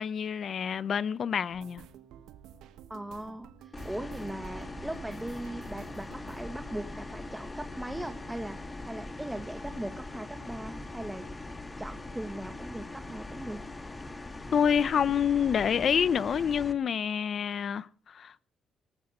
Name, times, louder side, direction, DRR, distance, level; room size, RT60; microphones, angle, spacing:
voice 1, 0.0-1.9 14.5-18.4, left 7 dB, 55° left, 0.7 m, -27 dB
sound 1, 1.5-8.4 8.6-9.7 10.0-10.3 10.6-10.8, right 9 dB, 85° right, 1.3 m, -52 dB
voice 2, 2.9-8.6 8.8-11.2 11.8-13.6, right 1 dB, 10° right, 1.6 m, -39 dB
sound 2, 3.7-16.7, left 2 dB, 20° left, 1.7 m, -41 dB
18.5 x 7.8 x 8.6 m
cardioid pair, 90°, 0 cm